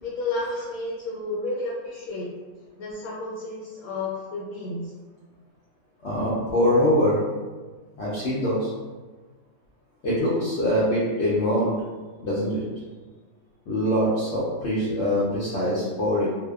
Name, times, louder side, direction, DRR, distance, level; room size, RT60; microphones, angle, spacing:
voice 1, 0.0-2.3 2.8-4.9, left 2 dB, 80° left, -6 dB, 1.0 m, -31 dB
voice 2, 6.0-7.2 8.0-8.7 10.0-11.8 12.2-12.6 13.7-16.3, left 1 dB, 65° left, -8 dB, 0.7 m, -23 dB
2.6 x 2.1 x 2.2 m, 1.3 s
omnidirectional pair, 1.6 m